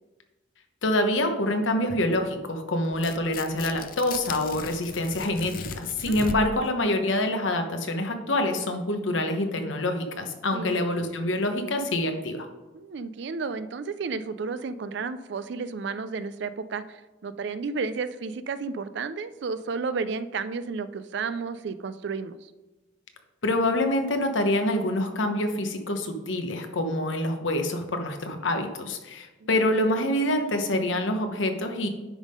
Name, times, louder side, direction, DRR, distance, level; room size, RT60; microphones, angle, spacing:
voice 1, 0.8-12.5 23.4-31.9, left 1 dB, 80° left, 6 dB, 1.0 m, -26 dB
Tearing, 2.9-6.7, left 5 dB, 45° left, 0.5 m, -37 dB
voice 2, 6.0-6.5 10.5-10.8 12.7-22.5 29.4-29.8, right 4 dB, 60° right, 13 dB, 0.4 m, -32 dB
9.9 x 3.6 x 5.2 m, 1.2 s
head